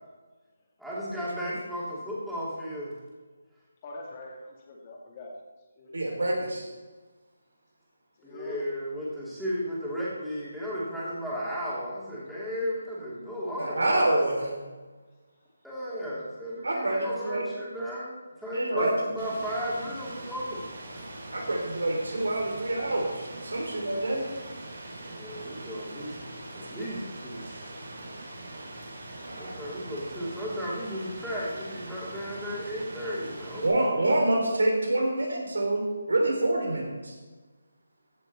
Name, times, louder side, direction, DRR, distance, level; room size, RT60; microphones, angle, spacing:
voice 1, 0.8-2.9 8.2-14.2 15.6-18.1 18.4-20.6 20.9-21.0 25.1-26.2 26.5-27.4 29.4-34.0, equal, ahead, -9 dB, 3.1 m, -34 dB
voice 2, 3.8-5.4 5.8-6.0 8.2-8.6, left 2 dB, 30° left, -1 dB, 2.3 m, -43 dB
voice 3, 5.9-6.7 13.6-14.5 16.6-17.4 18.5-18.9 21.3-24.2 29.2-29.6 33.6-37.1, right 1 dB, 80° right, 1 dB, 3.2 m, -27 dB
Rain, 19.2-33.7, right 1 dB, 60° right, 3.6 m, -42 dB
15.5 x 7.1 x 4.4 m, 1.3 s
figure-of-eight pair, 160°, 0 cm